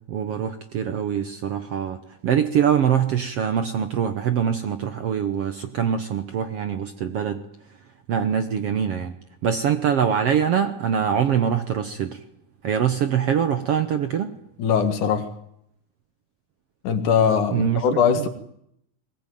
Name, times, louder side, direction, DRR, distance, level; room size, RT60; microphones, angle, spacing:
voice 1, 0.0-7.4 8.1-9.1 9.4-12.2 12.6-14.3 17.5-17.8 18.1-18.3, right 8 dB, 65° right, 9 dB, 1.6 m, -23 dB
voice 2, 14.6-15.3 16.8-18.3, left 7 dB, 65° left, 9 dB, 3.1 m, -21 dB
21.0 x 19.5 x 9.2 m, 0.74 s
omnidirectional pair, 3.9 m